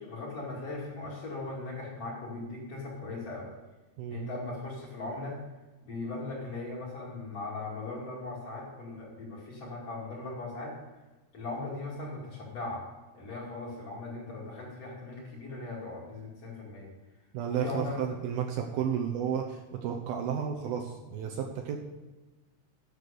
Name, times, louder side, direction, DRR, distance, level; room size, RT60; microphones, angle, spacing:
voice 1, 0.0-3.5 4.1-5.4 5.8-10.8 11.3-12.9 13.1-16.9 17.6-18.0, left 2 dB, 40° left, -4 dB, 3.1 m, -39 dB
voice 2, 4.0-4.3 17.3-21.8, right 8 dB, 75° right, 2 dB, 2.5 m, -32 dB
10.5 x 7.1 x 6.7 m, 1.2 s
omnidirectional pair, 4.8 m